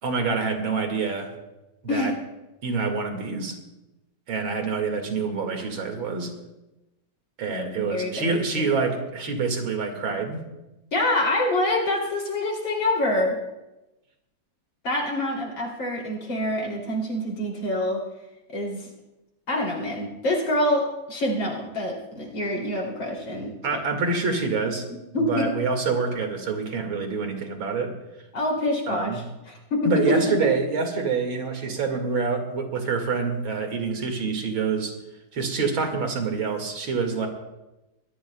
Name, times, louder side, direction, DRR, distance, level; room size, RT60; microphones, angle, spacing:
voice 1, 0.0-1.3 1.8-2.1 2.6-3.6 4.3-6.3 7.4-10.4 23.6-24.9 25.3-27.9 28.9-29.2 29.8-34.9 35.3-37.3, right 4 dB, 85° right, 4 dB, 2.8 m, -26 dB
voice 2, 7.7-8.7 10.9-13.4 14.8-18.0 18.5-18.9 19.5-23.8 25.1-25.5 28.3-30.5, left 1 dB, 75° left, -1 dB, 3.8 m, -26 dB
23.5 x 17.0 x 2.3 m, 0.98 s
omnidirectional pair, 2.1 m